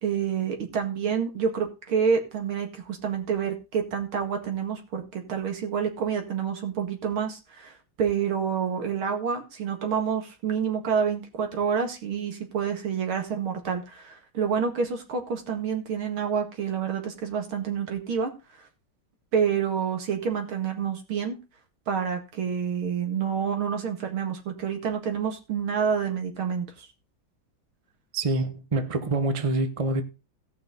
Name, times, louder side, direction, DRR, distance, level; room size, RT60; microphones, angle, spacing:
voice 1, 0.0-18.3 19.3-21.4 21.9-26.9, right 7 dB, 80° right, 2.8 m, -28 dB
voice 2, 28.1-30.0, right 2 dB, 35° right, 0.5 m, -26 dB
17.0 x 5.7 x 4.0 m
omnidirectional pair, 2.3 m